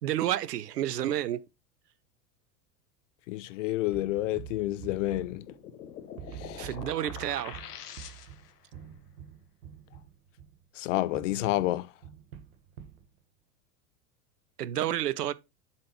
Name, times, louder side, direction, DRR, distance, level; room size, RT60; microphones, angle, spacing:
voice 1, 0.0-1.4 6.6-7.6 14.6-15.3, right 12 dB, 80° right, 0.7 m, -30 dB
voice 2, 3.3-5.4 6.4-6.7 10.8-11.9, left 16 dB, 55° left, 0.5 m, -29 dB
sound 1, 3.9-5.9 6.2-10.6 11.1-13.1, right 9 dB, 60° right, 1.2 m, -47 dB
sound 2, 5.1-8.6, left 9 dB, 75° left, 1.1 m, -45 dB
7.6 x 4.2 x 4.3 m
figure-of-eight pair, 85°, 47 cm